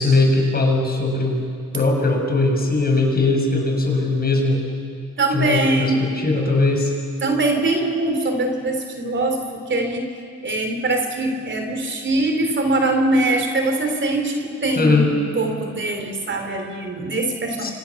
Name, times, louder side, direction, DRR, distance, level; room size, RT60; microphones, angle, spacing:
voice 1, 0.0-1.4 1.7-4.6 5.3-6.9 14.8-15.1 17.6-17.7, left 2 dB, 30° left, 2 dB, 6.4 m, -19 dB
voice 2, 5.2-6.1 7.2-10.1 10.4-17.7, right 2 dB, 40° right, 5 dB, 3.5 m, -22 dB
29.5 x 25.5 x 7.2 m, 2.2 s
cardioid pair, 90°, 30 cm